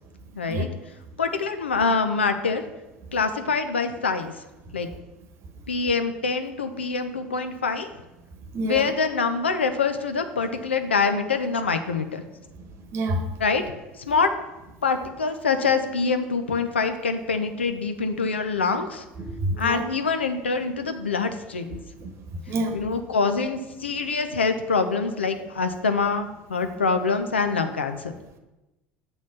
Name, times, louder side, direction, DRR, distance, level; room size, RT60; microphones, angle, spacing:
voice 1, 0.4-0.7 1.2-2.6 3.1-4.3 4.7-4.9 5.7-7.9 8.6-12.2 13.4-13.6 14.0-14.3 14.8-19.0 19.6-21.8 22.7-28.1, left 4 dB, 85° left, 8 dB, 0.6 m, -25 dB
voice 2, 8.5-8.9 12.9-13.2 19.2-19.8 22.0-22.1 22.5-22.8, right 1 dB, 50° right, 7 dB, 1.0 m, -27 dB
6.9 x 4.1 x 6.0 m, 1.0 s
figure-of-eight pair, 70°, 6 cm